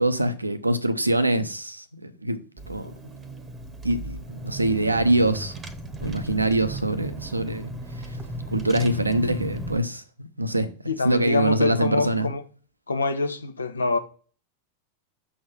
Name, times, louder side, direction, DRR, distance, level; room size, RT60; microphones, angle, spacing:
voice 1, 0.0-2.4 2.7-2.9 3.8-5.5 6.0-7.7 8.0-8.1 8.5-10.7 11.0-12.3, right 1 dB, 85° right, 0.8 m, -24 dB
Car / Engine, 2.6-9.8, right 1 dB, 15° right, 1.0 m, -36 dB
voice 2, 10.9-12.4 12.9-14.0, left 3 dB, 75° left, 0.9 m, -25 dB
6.7 x 4.3 x 5.3 m
figure-of-eight pair, 90°, 0 cm